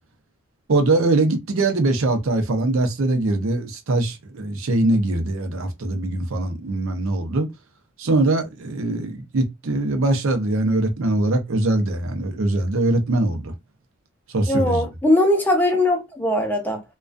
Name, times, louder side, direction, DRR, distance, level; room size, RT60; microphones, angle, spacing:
voice 1, 0.7-7.5 8.0-13.5 14.3-14.8, right 2 dB, 80° right, 0.5 m, -22 dB
voice 2, 14.5-16.8, left 1 dB, 10° left, 0.5 m, -20 dB
2.3 x 2.2 x 2.4 m
head